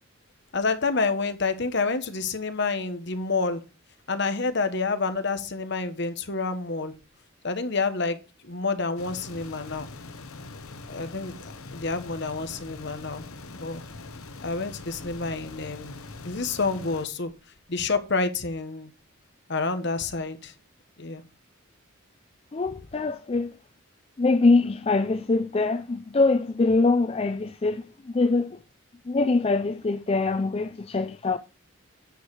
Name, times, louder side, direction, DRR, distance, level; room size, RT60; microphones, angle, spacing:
voice 1, 0.5-3.6 4.1-6.9 7.4-8.2 8.4-9.9 10.9-13.8 14.4-17.3 17.7-18.9 19.5-20.5 21.0-21.2, left 4 dB, 55° left, 1.3 m, -28 dB
sound 1, 9.0-17.1, left 3 dB, 85° left, 1.1 m, -42 dB
voice 2, 22.5-23.5 24.2-28.6 29.1-31.4, left 3 dB, 25° left, 0.4 m, -23 dB
9.3 x 6.4 x 4.8 m
head